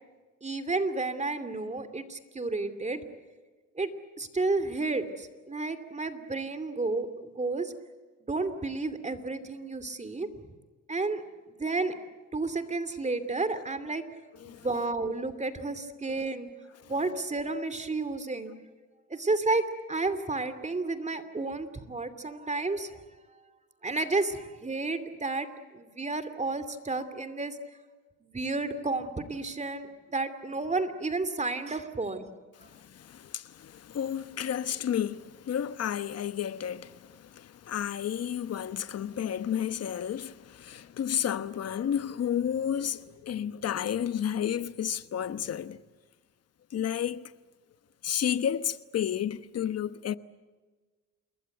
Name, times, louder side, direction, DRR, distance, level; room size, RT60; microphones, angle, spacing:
voice 1, 0.4-3.0 3.8-3.9 4.2-7.7 8.3-10.3 10.9-11.2 11.6-11.9 12.3-14.0 14.4-16.5 16.9-18.5 19.1-23.0 23.8-25.5 25.7-27.6 28.2-32.3, right 3 dB, 25° right, 2.7 m, -31 dB
voice 2, 32.6-45.8 46.7-47.3 48.0-50.2, left 9 dB, 55° left, 1.1 m, -32 dB
28.5 x 21.5 x 7.9 m
cardioid pair, 90°, 30 cm